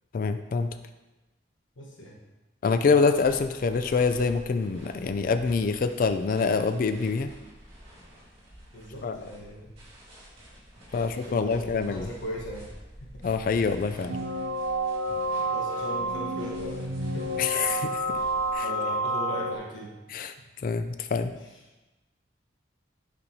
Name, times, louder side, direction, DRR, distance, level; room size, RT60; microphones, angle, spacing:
voice 1, 0.1-0.7 2.6-7.3 9.0-9.2 10.9-12.1 13.2-14.2 17.4-17.9 18.5-18.6 20.1-20.3 20.6-21.3, left 4 dB, 45° left, 9 dB, 0.3 m, -25 dB
voice 2, 1.8-2.2 8.7-9.8 10.9-12.7 13.0-13.2 15.5-17.3 18.1-18.2 18.6-19.9 21.3-21.6, equal, 80° left, -2 dB, 1.1 m, -39 dB
sound 1, 3.1-18.6, equal, 30° right, 2.6 m, -48 dB
sound 2, 14.1-19.5, right 1 dB, 75° right, 0.6 m, -29 dB
8.6 x 6.1 x 2.7 m, 1.1 s
head